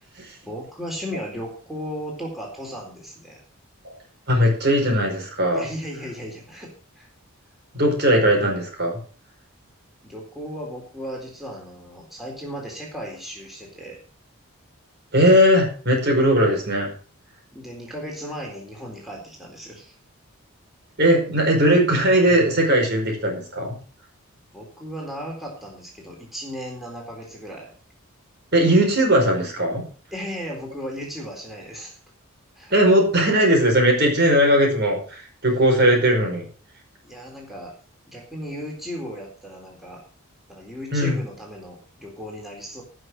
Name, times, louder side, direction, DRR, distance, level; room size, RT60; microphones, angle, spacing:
voice 1, 0.5-3.4 5.5-7.1 10.0-14.0 17.5-20.0 24.5-27.7 30.1-32.0 32.6-32.7 37.0-37.8 38.0-40.0 40.5-42.8, equal, ahead, -2 dB, 3.8 m, -35 dB
voice 2, 4.3-5.6 7.7-9.0 15.1-16.9 21.0-23.8 28.5-29.8 32.7-36.4 40.9-41.2, equal, 50° right, 2 dB, 5.1 m, -18 dB
17.5 x 6.4 x 6.5 m, 0.41 s
head